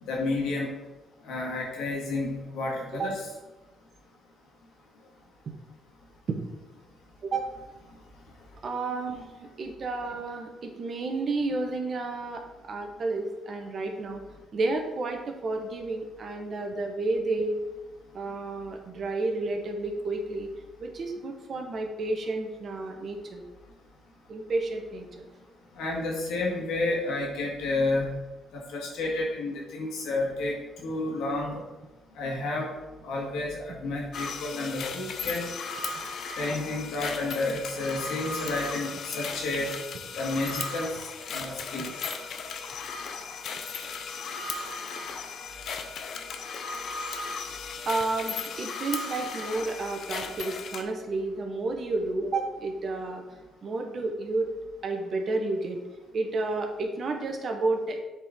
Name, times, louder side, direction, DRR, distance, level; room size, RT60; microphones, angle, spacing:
voice 1, 0.0-0.7 1.2-3.2 7.9-8.0 8.4-8.5 25.7-28.2 28.5-31.6 32.1-32.8 33.0-35.5 36.3-39.8 40.2-41.9, left 2 dB, 90° left, -2 dB, 1.9 m, -31 dB
voice 2, 8.6-14.2 14.5-17.6 18.1-20.5 20.8-23.4 24.3-25.2 47.8-53.2 53.6-54.5 54.8-55.8 56.1-58.0, right 3 dB, 50° right, 3 dB, 1.2 m, -31 dB
sound 1, 34.1-50.8, left 4 dB, 65° left, 0.7 m, -36 dB
7.9 x 4.6 x 3.7 m, 1.1 s
cardioid pair, 90°, 0 cm